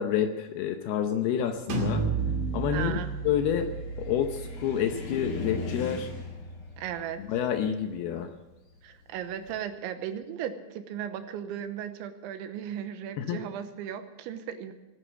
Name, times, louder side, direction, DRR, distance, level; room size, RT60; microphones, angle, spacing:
voice 1, 0.0-2.0 2.5-3.0 3.2-3.7 4.0-6.1 7.2-8.3 13.2-13.4, left 9 dB, 75° left, 6 dB, 2.4 m, -28 dB
Car, 1.4-9.6, left 3 dB, 40° left, 2.2 m, -41 dB
sound 1, 1.7-7.3, right 5 dB, 50° right, 3.4 m, -34 dB
voice 2, 2.7-3.1 6.8-7.2 8.8-14.7, right 9 dB, 90° right, 9 dB, 3.4 m, -36 dB
19.0 x 9.6 x 7.7 m, 1.0 s
omnidirectional pair, 5.3 m